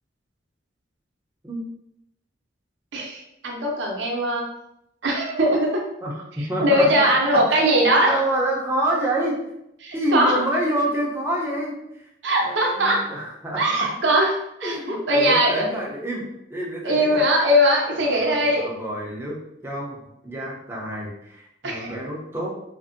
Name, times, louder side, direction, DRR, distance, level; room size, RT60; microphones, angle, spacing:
voice 1, 2.9-4.5 5.0-5.8 6.4-8.2 9.8-10.4 12.2-13.1 13.6-15.6 16.8-18.7 21.6-21.9, equal, 70° right, 0 dB, 0.5 m, -20 dB
voice 2, 6.5-7.4 7.9-9.4 9.9-12.0 12.4-13.9 14.6-17.2 18.0-22.5, right 1 dB, 15° right, -3 dB, 0.5 m, -28 dB
2.6 x 2.6 x 2.5 m, 0.81 s
head